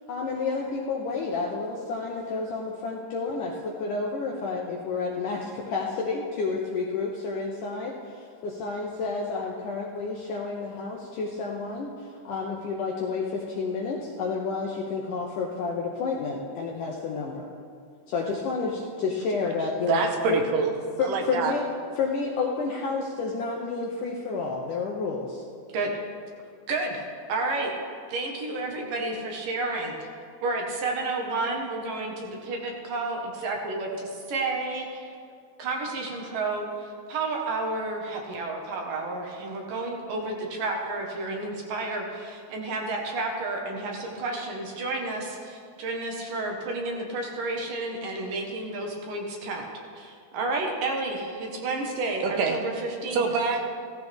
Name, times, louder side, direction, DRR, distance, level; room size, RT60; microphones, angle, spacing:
voice 1, 0.1-17.5 18.1-20.0 20.3-20.4 21.0-21.7 22.0-25.4, left 4 dB, 75° left, -1 dB, 2.0 m, -30 dB
voice 2, 19.9-20.7 21.0-21.5 52.2-52.6 53.1-53.6, right 5 dB, 80° right, 3 dB, 3.2 m, -25 dB
voice 3, 26.7-27.0 27.3-27.7 28.1-30.0 30.4-35.1 35.6-49.6 50.0-53.2, right 2 dB, 65° right, 0 dB, 2.8 m, -31 dB
16.5 x 14.0 x 3.5 m, 2.2 s
omnidirectional pair, 4.7 m